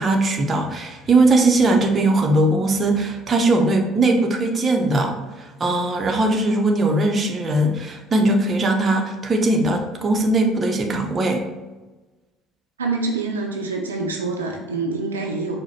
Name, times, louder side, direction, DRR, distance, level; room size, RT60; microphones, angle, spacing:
voice 1, 0.0-11.4, right 2 dB, 35° right, 3 dB, 0.6 m, -20 dB
voice 2, 12.8-15.6, right 3 dB, 85° right, 0 dB, 0.5 m, -26 dB
4.7 x 2.1 x 4.2 m, 1.2 s
figure-of-eight pair, 60°, 0 cm